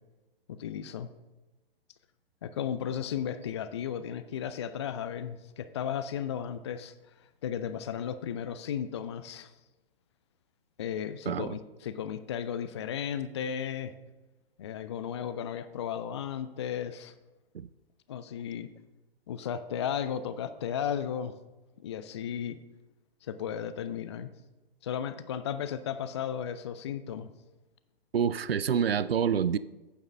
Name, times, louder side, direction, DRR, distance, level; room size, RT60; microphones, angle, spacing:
voice 1, 0.5-1.1 2.4-6.9 7.4-9.5 10.8-13.9 14.6-17.1 18.1-18.7 19.3-21.3 21.8-22.6 23.2-24.3 24.8-27.3, left 8 dB, 30° left, 12 dB, 0.4 m, -34 dB
voice 2, 11.3-11.6 17.5-17.7 28.1-29.6, right 7 dB, 75° right, 17 dB, 0.5 m, -27 dB
9.1 x 7.0 x 5.3 m, 1.1 s
figure-of-eight pair, 120°, 30 cm